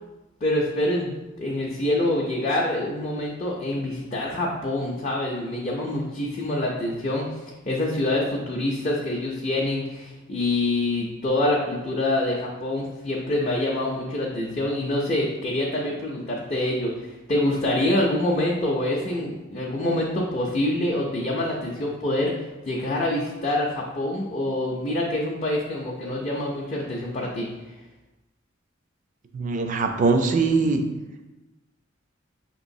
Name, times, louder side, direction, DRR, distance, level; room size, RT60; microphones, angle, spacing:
voice 1, 0.4-7.2 7.7-22.3 22.7-27.5, left 1 dB, 35° left, -3 dB, 0.5 m, -26 dB
voice 2, 29.3-30.8, right 4 dB, 40° right, 6 dB, 0.4 m, -22 dB
5.7 x 2.9 x 2.6 m, 1.1 s
head